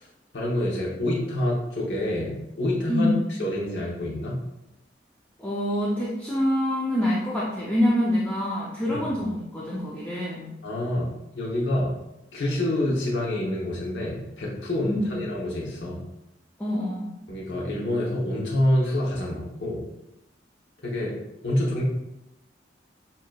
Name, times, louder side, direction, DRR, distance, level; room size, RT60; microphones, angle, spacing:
voice 1, 0.3-3.1 3.4-4.4 8.9-9.2 10.6-11.9 12.3-16.0 17.3-19.9 20.8-21.1 21.4-21.8, left 1 dB, 85° left, -4 dB, 1.0 m, -27 dB
voice 2, 2.9-3.2 5.4-10.5 14.9-15.2 16.6-17.1, equal, 10° left, -6 dB, 0.6 m, -26 dB
7.5 x 2.8 x 2.3 m, 0.89 s
head